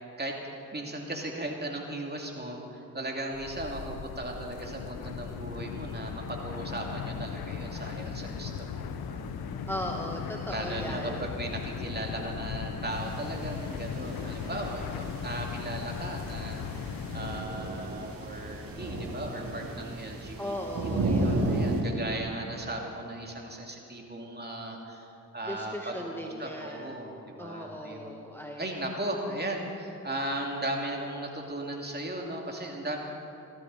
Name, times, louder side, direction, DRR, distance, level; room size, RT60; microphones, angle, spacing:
voice 1, 0.7-9.2 10.5-20.5 20.8-28.2 28.6-33.0, right 1 dB, 25° right, 0 dB, 2.6 m, -37 dB
sound 1, 3.3-17.4, left 6 dB, 90° left, 0.8 m, -37 dB
voice 2, 9.7-11.3 20.4-21.7 25.5-27.0 27.4-28.7 31.8-31.9, equal, 5° left, 1 dB, 1.3 m, -38 dB
sound 2, 12.9-21.8, right 2 dB, 70° right, 2.4 m, -34 dB
17.0 x 13.5 x 4.1 m, 2.8 s
cardioid pair, 55°, 36 cm